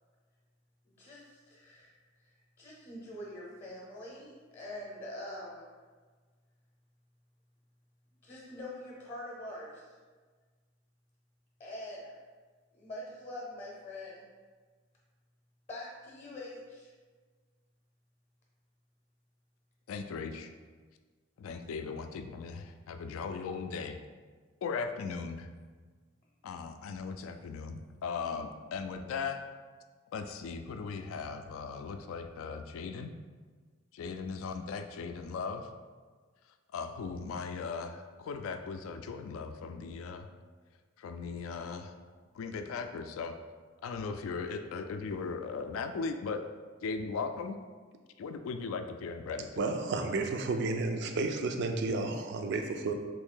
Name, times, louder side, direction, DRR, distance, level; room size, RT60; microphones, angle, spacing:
voice 1, 0.8-1.9 2.6-5.7 8.2-9.9 11.6-12.1 12.7-14.2 15.7-16.9, left 1 dB, 35° left, -5 dB, 0.6 m, -44 dB
voice 2, 19.9-20.5 21.4-24.0 24.6-25.5 26.4-29.4 30.1-33.1 33.9-35.7 36.7-40.3 41.0-41.9 42.4-43.4 43.8-46.4 46.8-47.6 48.2-49.7, left 5 dB, 75° left, 7 dB, 0.3 m, -38 dB
voice 3, 49.6-52.9, right 3 dB, 55° right, 5 dB, 0.4 m, -32 dB
3.1 x 2.6 x 3.7 m, 1.5 s
head